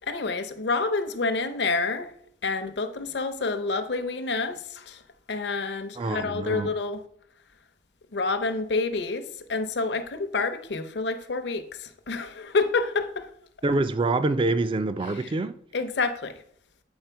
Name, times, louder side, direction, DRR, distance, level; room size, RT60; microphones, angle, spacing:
voice 1, 0.0-2.1 2.4-5.0 5.3-7.0 8.1-13.3 15.0-15.3 15.7-16.4, left 3 dB, 70° left, 0.7 m, -28 dB
voice 2, 6.0-6.7 13.6-15.5, right 2 dB, 30° right, 0.4 m, -26 dB
7.9 x 4.3 x 4.5 m
head